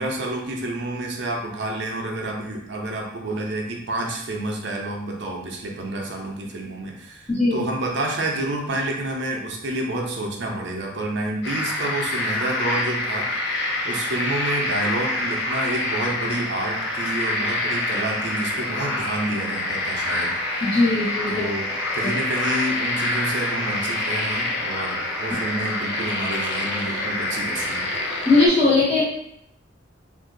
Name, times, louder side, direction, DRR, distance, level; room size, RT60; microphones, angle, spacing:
voice 1, 0.0-13.6 13.8-20.3 21.3-21.7 21.9-27.9, right 1 dB, 60° right, 0 dB, 0.6 m, -29 dB
voice 2, 7.3-7.6 20.6-21.3 28.2-29.0, left 2 dB, 30° left, -9 dB, 1.0 m, -18 dB
sound 1, 11.4-28.5, left 2 dB, 60° left, 0.7 m, -26 dB
2.6 x 2.6 x 3.8 m, 0.76 s
head